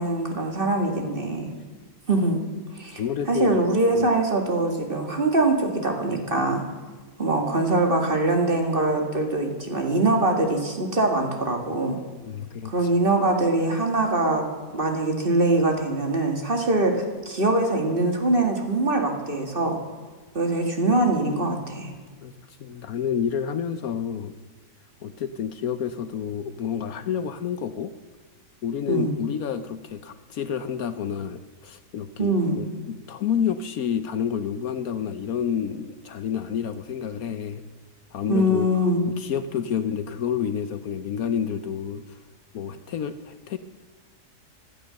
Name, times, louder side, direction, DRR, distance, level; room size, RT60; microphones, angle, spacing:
voice 1, 0.0-1.5 2.1-2.4 2.7-3.0 3.3-6.6 7.2-12.0 12.7-14.4 14.7-19.8 20.3-21.9 28.9-29.1 32.2-32.6 38.3-39.0, right 2 dB, 35° right, 3 dB, 2.2 m, -23 dB
voice 2, 3.0-3.6 3.9-4.1 12.2-12.9 22.2-24.3 25.0-27.9 28.6-37.6 38.1-38.7 39.2-42.2 42.5-43.6, left 8 dB, 65° left, 11 dB, 1.1 m, -29 dB
15.5 x 12.5 x 6.4 m, 1.4 s
omnidirectional pair, 1.7 m